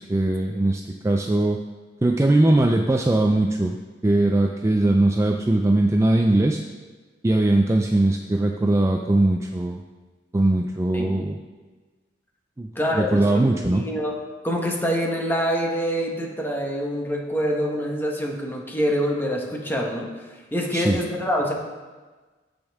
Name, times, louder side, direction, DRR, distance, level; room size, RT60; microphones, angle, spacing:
voice 1, 0.0-1.6 2.0-3.8 4.0-6.6 7.2-9.8 10.3-11.4 12.6-12.7 12.9-13.8 20.7-21.0, right 2 dB, 15° right, 2 dB, 0.3 m, -20 dB
voice 2, 12.7-14.2 14.4-20.2 20.5-21.5, equal, 10° left, 0 dB, 1.1 m, -25 dB
15.0 x 5.3 x 3.5 m, 1.3 s
head